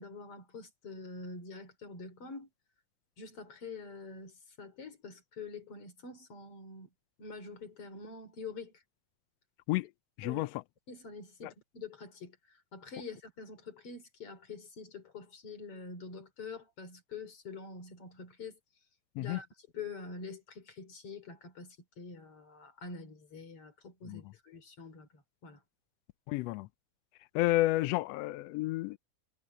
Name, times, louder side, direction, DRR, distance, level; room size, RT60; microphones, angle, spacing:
voice 1, 0.0-2.5 3.2-6.9 7.2-8.7 10.2-10.5 10.9-18.6 19.2-25.6, left 4 dB, 50° left, 4.7 m, -46 dB
voice 2, 26.3-26.7 27.3-29.0, left 17 dB, 85° left, 1.4 m, -30 dB
omnidirectional pair, 3.5 m